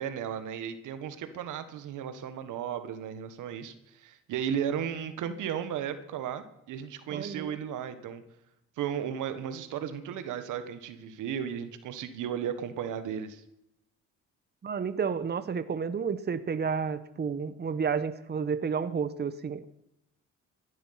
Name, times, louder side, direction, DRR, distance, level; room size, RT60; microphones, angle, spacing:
voice 1, 0.0-8.2 8.8-13.4, right 8 dB, 85° right, 11 dB, 1.5 m, -35 dB
voice 2, 7.1-7.6 14.6-19.7, right 6 dB, 35° right, 13 dB, 1.0 m, -31 dB
15.5 x 12.0 x 5.9 m, 0.81 s
cardioid pair, 90°, 30 cm